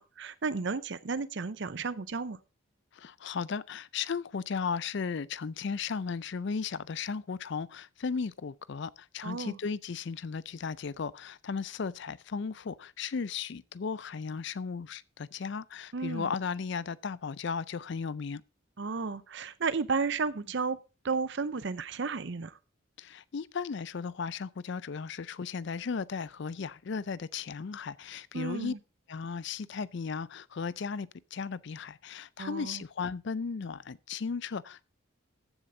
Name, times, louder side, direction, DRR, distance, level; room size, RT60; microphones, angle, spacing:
voice 1, 0.0-2.4 9.2-9.6 15.9-16.3 18.8-20.8 21.0-22.5 28.3-28.8 32.4-32.8, right 4 dB, 55° right, 0.6 m, -33 dB
voice 2, 2.9-18.4 23.0-28.8 29.1-34.8, left 5 dB, 55° left, 0.4 m, -35 dB
14.5 x 6.8 x 3.8 m
head